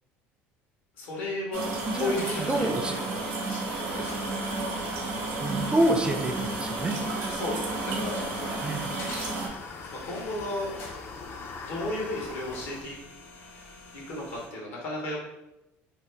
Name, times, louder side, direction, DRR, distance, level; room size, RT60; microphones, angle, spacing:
voice 1, 1.0-1.6 1.9-4.2 7.2-8.2 10.0-10.7 11.7-13.0 13.9-15.2, left 1 dB, 85° left, -3 dB, 1.1 m, -34 dB
sound 1, 1.5-9.5, right 3 dB, 70° right, 0.8 m, -32 dB
sound 2, 1.8-14.5, left 2 dB, 60° left, 1.0 m, -47 dB
voice 2, 1.9-3.0 5.4-7.0 8.6-8.9, right 1 dB, 15° right, 4 dB, 0.4 m, -27 dB
sound 3, 3.8-12.8, left 4 dB, 45° left, 0.4 m, -43 dB
2.8 x 2.1 x 3.3 m, 0.94 s
supercardioid pair, 90°, 6 cm